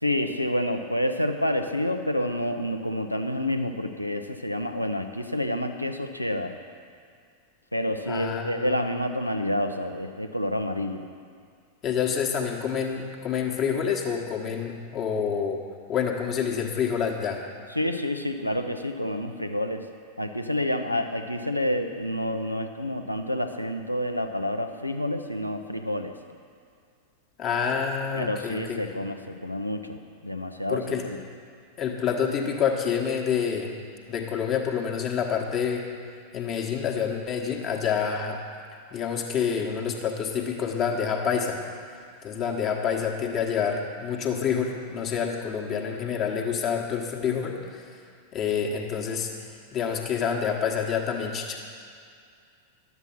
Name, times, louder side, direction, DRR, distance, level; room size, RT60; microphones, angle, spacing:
voice 1, 0.0-6.6 7.7-11.0 17.7-19.9 20.2-26.1 28.1-31.2, left 1 dB, 90° left, 6 dB, 0.7 m, -28 dB
voice 2, 8.1-8.8 11.8-15.6 15.9-17.4 27.4-28.8 30.7-31.0 31.8-33.8 34.1-35.8 36.3-38.4 38.9-41.6 42.2-47.9 48.3-49.3 49.7-51.6, left 7 dB, 35° left, 1 dB, 1.3 m, -27 dB
11.5 x 8.1 x 5.9 m, 2.2 s
figure-of-eight pair, 90°, 0 cm